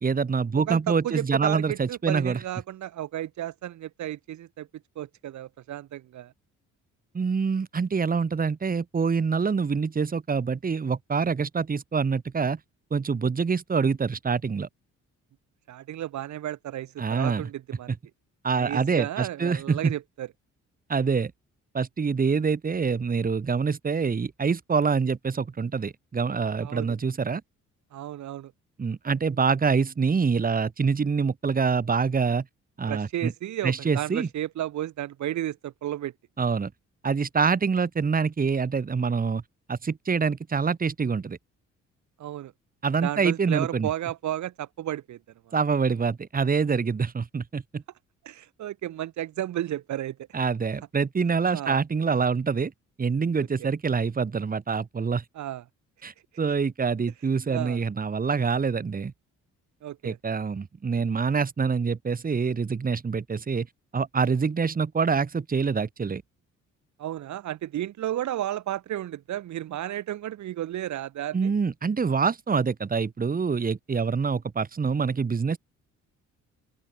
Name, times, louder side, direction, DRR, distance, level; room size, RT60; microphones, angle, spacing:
voice 1, 0.0-2.4 7.1-12.6 12.9-14.7 17.0-17.4 18.4-19.9 20.9-21.3 21.7-27.4 28.8-32.4 32.8-33.3 33.6-34.3 36.4-36.7 37.0-39.4 39.7-41.4 42.8-43.9 45.5-47.8 50.3-52.7 53.0-55.2 56.0-59.1 60.0-63.7 63.9-66.2 71.3-75.6, right 5 dB, 30° right, 1.6 m, -25 dB
voice 2, 0.5-4.7 4.9-6.3 15.7-17.9 18.6-20.3 26.6-26.9 27.9-28.5 32.9-36.1 42.2-42.5 43.0-45.2 45.5-45.6 48.2-50.2 51.5-51.8 55.3-55.6 57.5-57.8 59.8-60.2 67.0-71.5, right 12 dB, 70° right, 1.5 m, -33 dB
open air
cardioid pair, 90°, 30 cm